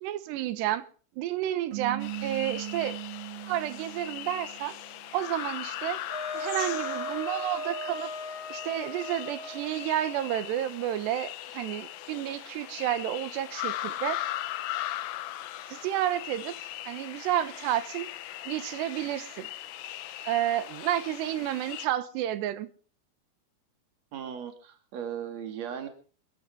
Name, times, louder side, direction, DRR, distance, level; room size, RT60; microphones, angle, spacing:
voice 1, 0.0-0.8 1.2-3.0 3.5-4.7 5.1-6.0 6.3-8.1 8.5-14.2 15.7-16.5 16.9-18.1 18.5-19.5 20.2-22.7, right 12 dB, 80° right, 3.2 m, -30 dB
sound 1, 1.7-5.0, right 19 dB, 60° right, 3.4 m, -39 dB
sound 2, 2.0-21.9, left 14 dB, 90° left, 3.3 m, -39 dB
Wind instrument woodwind instrument, 6.1-10.5, equal, 20° right, 4.5 m, -38 dB
voice 2, 24.1-25.9, right 8 dB, 45° right, 3.1 m, -37 dB
28.0 x 10.5 x 4.8 m
omnidirectional pair, 5.0 m